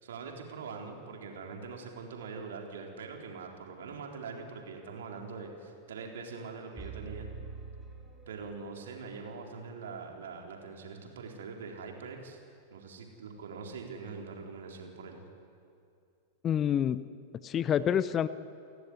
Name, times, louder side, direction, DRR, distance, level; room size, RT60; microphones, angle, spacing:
voice 1, 0.0-7.3 8.3-12.4 12.7-15.3, right 5 dB, 60° right, 1 dB, 4.0 m, -43 dB
sound 1, 6.8-8.9, right 4 dB, 5° right, 4.1 m, -45 dB
voice 2, 16.4-17.1 17.3-18.3, left 9 dB, 25° left, 16 dB, 0.8 m, -27 dB
29.5 x 14.5 x 9.8 m, 2.5 s
figure-of-eight pair, 90°, 0 cm